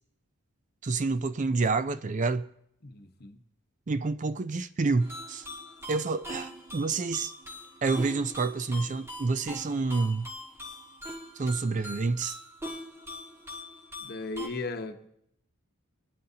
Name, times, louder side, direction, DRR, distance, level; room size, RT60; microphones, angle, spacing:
voice 1, 0.8-2.5 3.9-5.5 5.9-7.3 7.8-10.3 11.4-12.4, right 3 dB, 35° right, 0.4 m, -28 dB
voice 2, 2.8-3.4 14.0-15.1, left 3 dB, 45° left, 1.1 m, -36 dB
sound 1, 5.0-14.5, equal, 10° right, 1.7 m, -42 dB
22.0 x 11.5 x 2.8 m
head